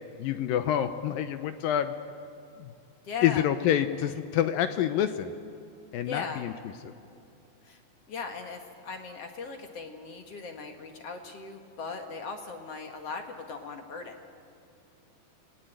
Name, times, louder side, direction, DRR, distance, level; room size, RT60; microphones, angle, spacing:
voice 1, 0.2-1.9 2.6-2.7 3.2-5.3 5.9-6.5 6.8-6.9, left 10 dB, 75° left, 10 dB, 2.2 m, -27 dB
voice 2, 3.0-3.5 6.1-6.4 7.6-7.8 8.1-14.2, left 5 dB, 55° left, 4 dB, 1.8 m, -39 dB
29.5 x 20.5 x 9.1 m, 2.8 s
omnidirectional pair, 4.7 m